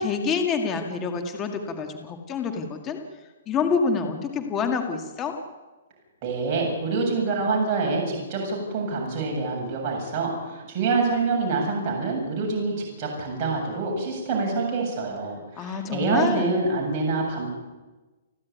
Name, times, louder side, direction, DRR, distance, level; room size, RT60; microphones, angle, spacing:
voice 1, 0.0-3.0 3.5-5.3 15.6-16.6, left 5 dB, 20° left, 5 dB, 1.9 m, -27 dB
voice 2, 6.2-17.5, right 3 dB, 30° right, -1 dB, 7.5 m, -26 dB
30.0 x 11.5 x 9.3 m, 1.2 s
hypercardioid pair, 160°, 0 cm